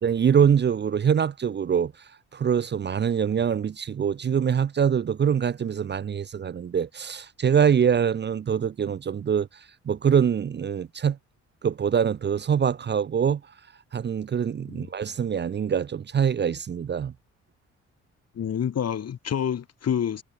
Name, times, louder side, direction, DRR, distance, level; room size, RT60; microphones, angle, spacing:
voice 1, 0.0-1.9 2.3-11.2 11.6-13.4 13.9-17.1, right 7 dB, 35° right, 0.7 m, -24 dB
voice 2, 18.3-20.2, left 8 dB, 55° left, 3.7 m, -28 dB
cardioid pair, 90°, 30 cm